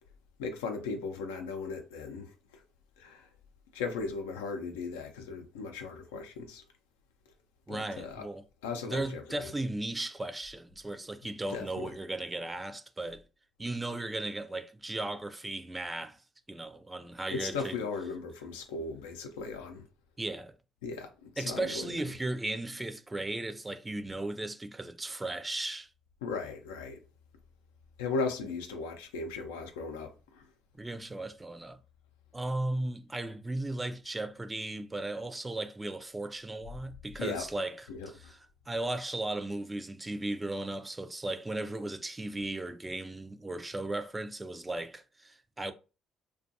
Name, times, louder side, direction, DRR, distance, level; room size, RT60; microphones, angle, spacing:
voice 1, 0.4-2.3 3.0-3.3 3.7-6.6 7.7-8.2 8.6-9.2 11.5-11.9 17.3-19.8 20.8-21.9 26.2-27.0 28.0-30.4 37.2-37.4 37.9-38.1, left 4 dB, 90° left, 0.4 m, -37 dB
voice 2, 7.7-8.5 8.8-13.2 13.6-16.2 16.5-17.8 20.2-20.5 21.4-25.9 30.8-31.8 32.3-45.7, right 2 dB, 20° right, 0.4 m, -36 dB
2.5 x 2.3 x 2.6 m
hypercardioid pair, 55°, 0 cm